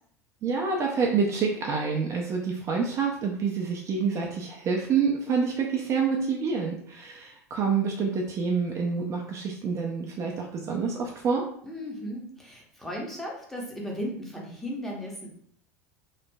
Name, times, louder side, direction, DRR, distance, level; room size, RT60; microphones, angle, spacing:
voice 1, 0.4-11.4, right 5 dB, 35° right, 0 dB, 0.4 m, -27 dB
voice 2, 11.6-15.3, equal, 5° left, -2 dB, 0.8 m, -36 dB
2.9 x 2.4 x 2.2 m, 0.64 s
figure-of-eight pair, 75°, 9 cm